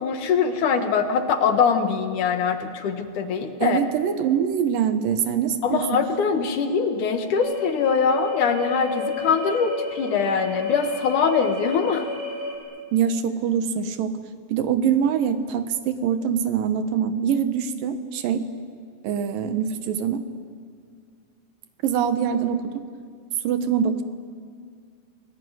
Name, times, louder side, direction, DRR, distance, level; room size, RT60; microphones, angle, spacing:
voice 1, 0.0-3.8 5.6-12.1, left 5 dB, 65° left, 7 dB, 2.6 m, -23 dB
voice 2, 3.6-5.8 12.9-14.1 14.5-18.5 19.0-20.2 21.8-22.8 23.4-24.0, right 8 dB, 70° right, 10 dB, 2.7 m, -24 dB
sound 1, 7.3-12.6, left 5 dB, 50° right, 6.8 m, -31 dB
29.5 x 19.0 x 9.5 m, 2.1 s
omnidirectional pair, 4.3 m